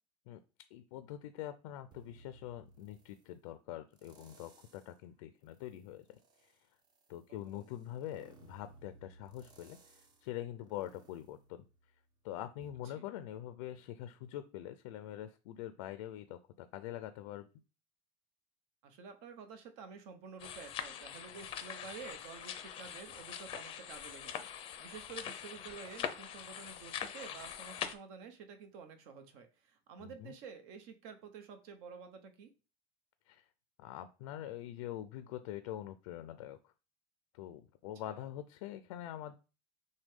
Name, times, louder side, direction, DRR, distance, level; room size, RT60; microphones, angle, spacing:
voice 1, 0.7-6.6 7.1-11.6 12.2-17.5 30.0-30.3 33.3-33.5 33.8-36.7 37.3-39.3, left 12 dB, 85° left, 11 dB, 0.5 m, -44 dB
sound 1, 1.9-3.3 3.9-5.0 5.5-12.2 12.6-12.7, right 3 dB, 25° right, 0.7 m, -61 dB
voice 2, 7.3-7.7 13.0-13.1 18.8-32.5 38.0-38.2, right 6 dB, 60° right, 7 dB, 1.0 m, -50 dB
sound 2, 20.4-27.9, left 9 dB, 30° left, 0.5 m, -43 dB
6.1 x 2.2 x 3.6 m, 0.32 s
cardioid pair, 155°, 17 cm